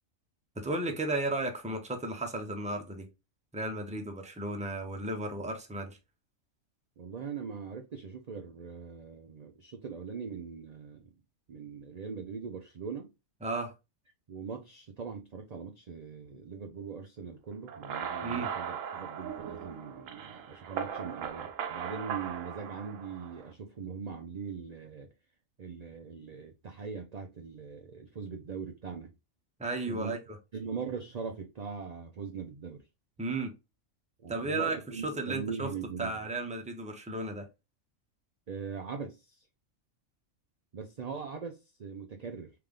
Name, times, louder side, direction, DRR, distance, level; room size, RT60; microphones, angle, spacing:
voice 1, 0.6-3.1 3.5-6.0 13.4-13.7 18.2-18.5 29.6-30.2 33.2-33.5 34.3-35.7 36.0-37.5, right 2 dB, 5° right, 0.6 m, -34 dB
voice 2, 7.0-11.1 11.5-13.1 14.3-25.1 25.6-29.1 29.9-30.1 30.5-32.8 34.2-36.2 38.5-39.4 40.7-42.5, right 5 dB, 55° right, 0.4 m, -41 dB
sound 1, 17.7-23.5, right 8 dB, 75° right, 1.0 m, -38 dB
3.5 x 3.4 x 3.6 m
omnidirectional pair, 1.4 m